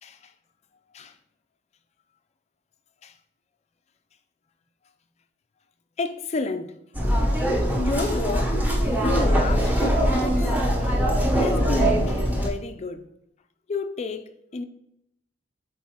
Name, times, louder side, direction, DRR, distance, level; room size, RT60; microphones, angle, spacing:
voice 1, 6.0-6.7 7.8-8.6 9.0-10.4 10.8-11.0 11.3-13.0 13.7-14.2 14.5-14.6, left 3 dB, 30° left, 0.4 m, -30 dB
sound 1, 6.9-12.5, equal, 10° right, 0.8 m, -22 dB
8.4 x 4.0 x 2.9 m
head